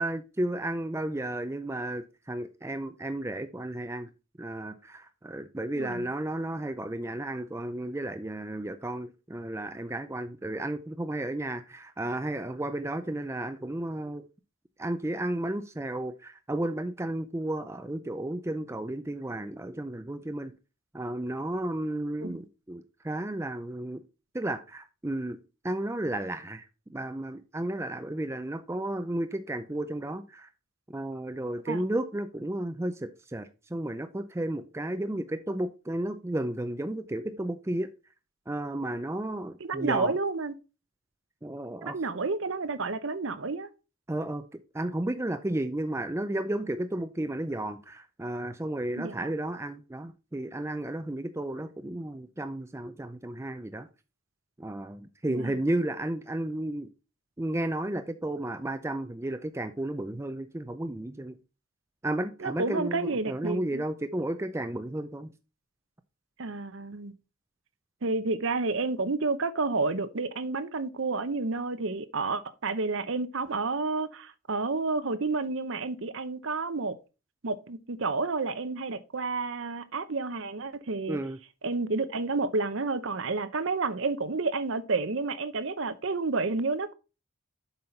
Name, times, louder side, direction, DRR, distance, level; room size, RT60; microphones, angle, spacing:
voice 1, 0.0-4.1 4.4-14.2 14.8-20.5 20.9-24.0 24.3-26.6 26.9-30.5 30.9-37.9 38.5-40.2 41.4-42.0 44.1-53.9 54.6-56.9 57.4-61.4 62.0-65.3 81.1-81.4, right 1 dB, 10° right, 0.4 m, -33 dB
voice 2, 39.6-40.5 41.8-43.7 49.0-49.3 55.3-55.5 62.4-63.8 66.4-67.1 68.0-77.0 77.4-81.2 81.6-86.9, right 3 dB, 60° right, 0.7 m, -30 dB
7.7 x 5.6 x 4.4 m
head